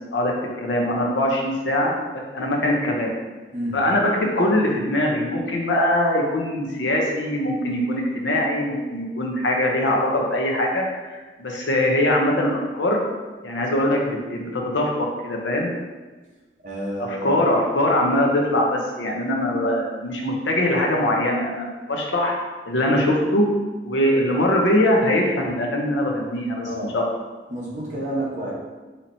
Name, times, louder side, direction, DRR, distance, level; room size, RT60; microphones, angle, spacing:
voice 1, 0.6-1.9 2.3-3.1 3.7-13.0 13.4-15.7 17.0-22.3 22.7-23.4 23.8-26.7 26.9-27.0, left 1 dB, 90° left, 0 dB, 0.7 m, -22 dB
voice 2, 3.5-3.9 16.6-17.5 26.6-26.9 27.5-28.5, right 1 dB, 45° right, -5 dB, 0.9 m, -29 dB
4.3 x 2.9 x 2.6 m, 1.3 s
head